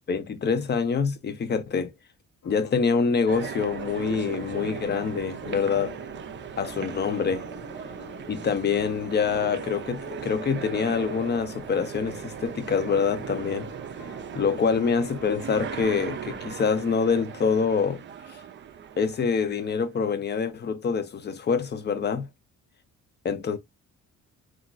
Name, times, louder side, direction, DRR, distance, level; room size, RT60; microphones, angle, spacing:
voice 1, 0.1-1.9 2.4-6.0 6.6-7.5 8.3-13.7 14.3-18.0 19.0-22.3 23.2-23.6, left 5 dB, 35° left, 0.6 m, -26 dB
sound 1, 2.4-16.5, left 5 dB, 70° left, 0.9 m, -47 dB
sound 2, 3.3-19.9, right 8 dB, 40° right, 0.4 m, -38 dB
2.9 x 2.4 x 2.4 m
cardioid pair, 90°, 30 cm